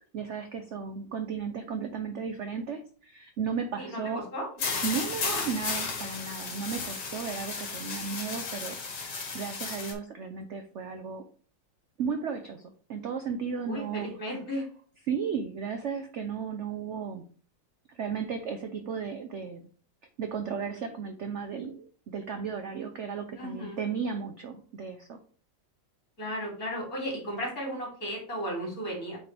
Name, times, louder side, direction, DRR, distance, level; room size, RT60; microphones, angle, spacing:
voice 1, 0.1-4.3 4.6-11.2 12.0-14.1 15.1-17.2 17.9-19.7 20.2-25.2, right 6 dB, 70° right, 7 dB, 0.6 m, -35 dB
sound 1, 4.6-9.9, left 4 dB, 65° left, 2.2 m, -34 dB
voice 2, 13.6-14.6 23.4-23.8 26.2-29.2, equal, 50° left, -2 dB, 3.6 m, -34 dB
8.7 x 4.1 x 3.4 m, 0.43 s
omnidirectional pair, 2.0 m